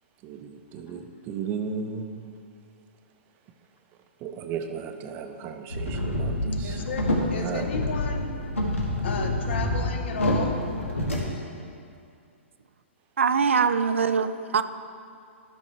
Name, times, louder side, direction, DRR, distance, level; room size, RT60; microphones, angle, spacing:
voice 1, 0.2-2.2 4.2-6.8 7.4-7.6, right 6 dB, 30° right, 6 dB, 0.6 m, -35 dB
sound 1, 5.7-11.2, left 1 dB, 90° left, 1.5 m, -27 dB
voice 2, 6.5-8.3 9.0-10.6, left 5 dB, 60° left, 5 dB, 0.9 m, -34 dB
voice 3, 13.2-14.6, right 6 dB, 75° right, 11 dB, 0.4 m, -23 dB
12.0 x 6.2 x 3.2 m, 2.4 s
figure-of-eight pair, 115°, 7 cm